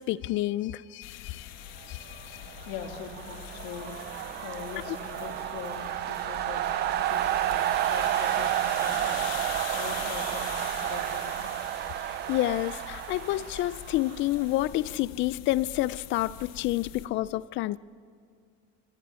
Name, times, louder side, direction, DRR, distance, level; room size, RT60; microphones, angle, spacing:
voice 1, 0.0-1.5 1.9-2.4 4.9-5.0 12.3-17.8, left 16 dB, 40° left, 0.6 m, -29 dB
sound 1, 1.0-17.1, left 11 dB, 60° left, 1.9 m, -43 dB
voice 2, 2.4-4.0 4.4-9.3 9.7-11.5, left 6 dB, 75° left, 3.2 m, -42 dB
sound 2, 2.5-14.4, right 13 dB, 35° right, 0.6 m, -31 dB
26.5 x 26.0 x 7.0 m
cardioid pair, 155°, 30 cm